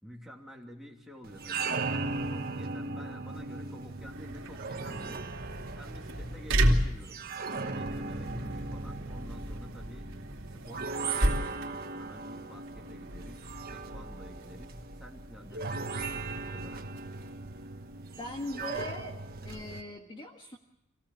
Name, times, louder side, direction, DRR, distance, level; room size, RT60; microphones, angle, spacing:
voice 1, 0.0-5.3 5.7-10.1 10.5-16.9, equal, ahead, -1 dB, 2.8 m, -50 dB
sound 1, 1.2-19.8, right 3 dB, 45° right, 1.4 m, -38 dB
sound 2, 3.8-19.2, right 1 dB, 65° right, 3.1 m, -35 dB
voice 2, 18.2-19.2 19.4-20.6, left 1 dB, 25° left, 2 dB, 1.6 m, -40 dB
25.5 x 17.5 x 7.2 m, 0.86 s
head